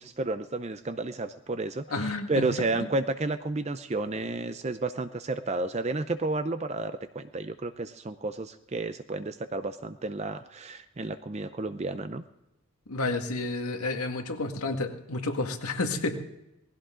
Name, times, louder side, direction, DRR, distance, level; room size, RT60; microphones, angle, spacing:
voice 1, 0.0-12.2, right 2 dB, 30° right, 10 dB, 0.5 m, -31 dB
voice 2, 1.9-2.4 2.8-2.9 12.9-16.2, left 2 dB, 80° left, 4 dB, 1.9 m, -30 dB
20.0 x 16.0 x 3.8 m, 0.92 s
head